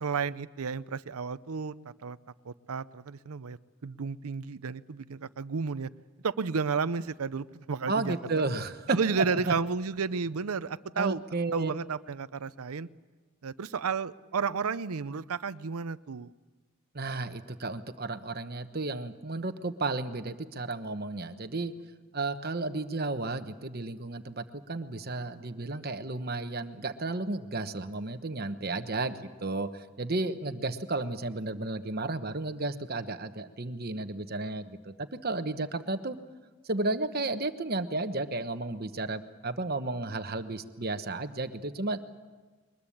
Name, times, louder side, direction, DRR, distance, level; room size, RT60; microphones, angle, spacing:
voice 1, 0.0-1.7 2.0-2.2 2.5-3.6 3.8-5.9 6.2-8.1 8.9-11.2 11.5-12.9 13.4-16.3, right 5 dB, 85° right, 15 dB, 0.6 m, -32 dB
voice 2, 7.9-9.5 11.0-11.7 16.9-21.7 22.1-36.2 36.6-42.0, right 2 dB, 45° right, 9 dB, 1.1 m, -33 dB
22.5 x 21.0 x 8.5 m, 1.3 s
head